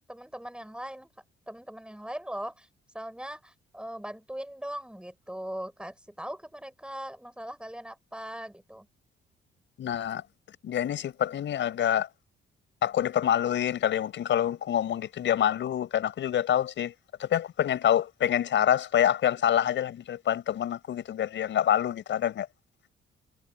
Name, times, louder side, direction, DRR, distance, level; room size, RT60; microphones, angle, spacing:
voice 1, 0.1-1.1 1.5-2.7 2.9-8.9, right 1 dB, 5° right, 5.9 m, -40 dB
voice 2, 9.8-10.2 10.6-12.1 12.8-16.9 17.2-22.5, left 10 dB, 70° left, 6.2 m, -26 dB
cardioid pair, 90°, 20 cm